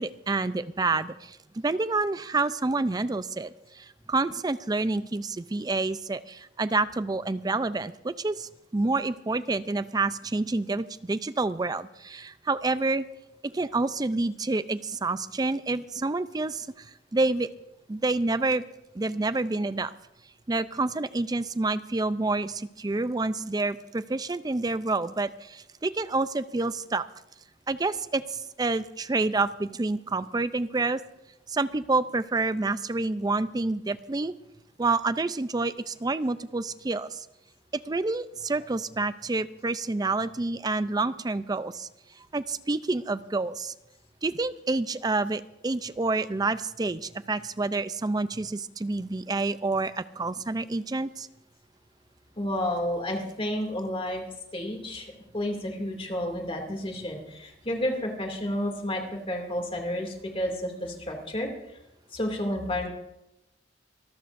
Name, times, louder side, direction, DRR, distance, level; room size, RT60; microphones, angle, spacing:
voice 1, 0.0-13.0 13.4-17.5 17.9-18.6 18.9-19.9 20.5-27.0 27.7-31.0 31.5-34.3 34.8-37.3 37.9-41.9 42.3-43.7 44.2-51.3, right 3 dB, 20° right, 14 dB, 0.4 m, -28 dB
voice 2, 52.4-54.2 54.5-55.1 55.3-61.5 62.1-62.9, left 1 dB, 30° left, 2 dB, 2.5 m, -31 dB
25.5 x 13.5 x 2.6 m, 0.89 s
head